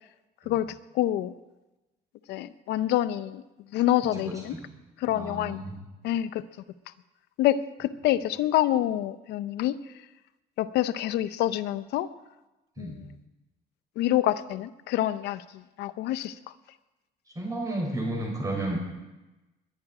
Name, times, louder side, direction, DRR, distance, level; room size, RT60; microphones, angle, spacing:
voice 1, 0.5-1.3 2.3-3.4 3.7-4.6 5.0-5.6 6.0-6.4 7.4-9.8 10.6-12.1 12.8-13.1 14.0-16.3, left 13 dB, 80° left, 14 dB, 0.7 m, -27 dB
voice 2, 4.1-4.7 5.1-5.8 12.8-13.0 17.3-18.8, right 1 dB, 20° right, -2 dB, 6.7 m, -32 dB
21.5 x 10.0 x 4.9 m, 1.1 s
cardioid pair, 110°, 17 cm